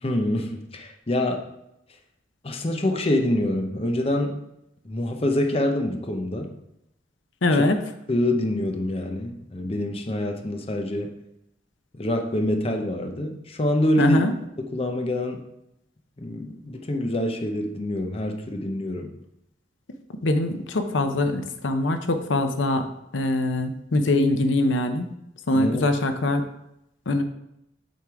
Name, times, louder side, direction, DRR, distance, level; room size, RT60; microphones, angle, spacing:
voice 1, 0.0-1.5 2.4-4.4 4.8-6.5 7.5-7.7 8.1-11.1 11.9-14.2 14.6-15.5 16.2-19.1 25.5-25.8, left 1 dB, 30° left, 4 dB, 0.7 m, -26 dB
voice 2, 7.4-7.8 14.0-14.3 20.2-22.9 23.1-25.1 25.5-26.4 27.1-27.2, left 2 dB, 90° left, 7 dB, 0.7 m, -22 dB
7.6 x 3.7 x 4.7 m, 0.81 s
head